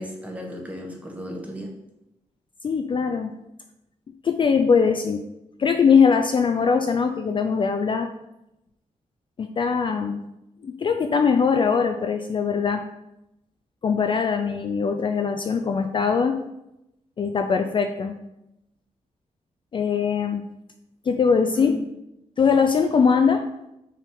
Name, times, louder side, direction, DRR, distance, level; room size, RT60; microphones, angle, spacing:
voice 1, 0.0-1.7 21.5-21.9, equal, 10° right, 0 dB, 1.0 m, -35 dB
voice 2, 2.6-3.3 4.2-5.2 5.6-8.1 9.4-10.2 10.6-12.8 13.8-16.4 17.2-18.2 19.7-20.4 21.0-21.7 22.4-23.4, left 6 dB, 40° left, 5 dB, 0.3 m, -21 dB
5.7 x 3.6 x 4.6 m, 0.88 s
wide cardioid pair, 155°, 13 cm